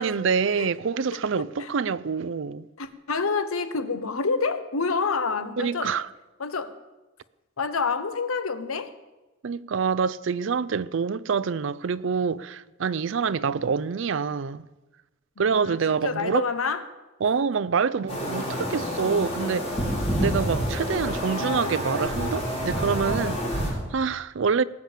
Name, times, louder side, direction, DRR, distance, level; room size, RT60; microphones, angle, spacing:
voice 1, 0.0-2.7 5.6-6.1 9.4-14.6 15.4-16.4 17.2-19.7 20.2-24.6, right 5 dB, 65° right, 0.4 m, -26 dB
voice 2, 2.8-5.9 6.4-6.7 7.6-8.9 15.4-16.9, left 4 dB, 90° left, 1.0 m, -28 dB
sound 1, 18.1-23.7, equal, 30° left, 4.9 m, -28 dB
18.5 x 7.5 x 7.3 m
head